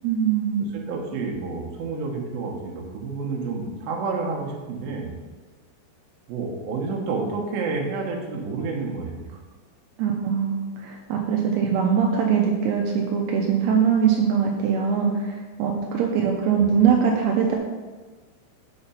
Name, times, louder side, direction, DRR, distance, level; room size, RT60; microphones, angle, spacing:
voice 1, 0.0-0.9 10.0-17.6, right 7 dB, 85° right, 0 dB, 2.5 m, -22 dB
voice 2, 0.7-5.2 6.3-9.4 16.5-16.7, right 4 dB, 70° right, -1 dB, 2.5 m, -30 dB
7.9 x 4.3 x 5.6 m, 1.4 s
omnidirectional pair, 5.2 m